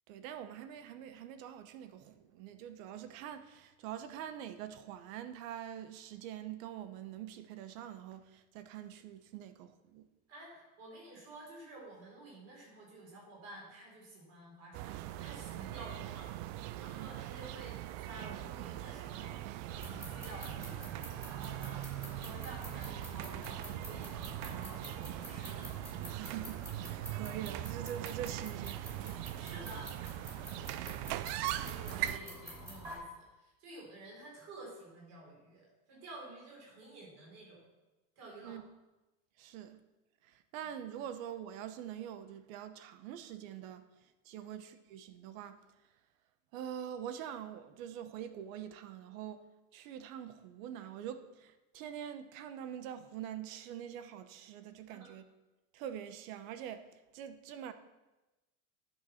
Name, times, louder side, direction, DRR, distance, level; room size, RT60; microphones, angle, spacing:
voice 1, 0.1-10.1 17.0-17.1 26.1-28.9 38.4-38.6 39.4-39.8 40.2-45.6 46.5-49.4 49.7-55.2 55.7-57.7, right 10 dB, 75° right, 1.0 m, -45 dB
voice 2, 10.3-19.4 19.8-20.8 21.2-25.7 29.4-29.9 31.6-37.6 38.2-38.6 40.6-40.7 44.4-44.5 54.9-55.1, right 2 dB, 40° right, 4.1 m, -51 dB
sound 1, 14.7-32.2, right 14 dB, 55° right, 0.5 m, -41 dB
sound 2, 19.7-33.0, equal, 5° right, 3.0 m, -49 dB
10.5 x 6.5 x 5.8 m
cardioid pair, 160°, 41 cm